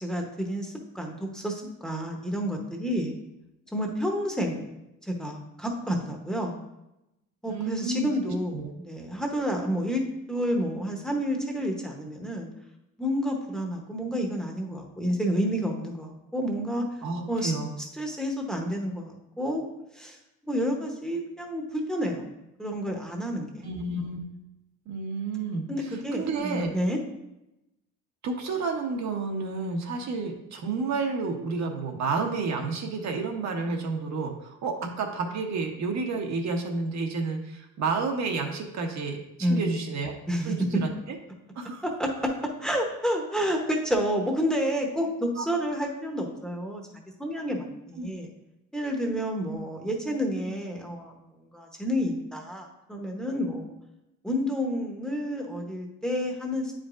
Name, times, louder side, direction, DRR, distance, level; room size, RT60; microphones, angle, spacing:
voice 1, 0.0-3.1 3.7-4.6 5.0-6.6 7.4-10.0 10.3-12.5 13.0-16.8 17.3-17.5 17.8-19.6 19.9-20.2 20.5-22.3 22.6-23.6 25.7-27.0 39.4-39.8 40.3-40.8 41.8-42.3 42.6-48.3 48.7-51.1 51.5-53.7 54.2-56.7, equal, ahead, 1 dB, 0.8 m, -29 dB
voice 2, 7.5-8.7 17.0-17.7 23.6-24.2 24.9-25.6 26.1-26.7 28.2-40.2 40.4-41.2 41.6-41.8 45.4-45.5 48.0-48.1 49.5-49.6, right 4 dB, 60° right, 3 dB, 1.0 m, -30 dB
8.4 x 5.0 x 2.5 m, 0.90 s
cardioid pair, 125°, 31 cm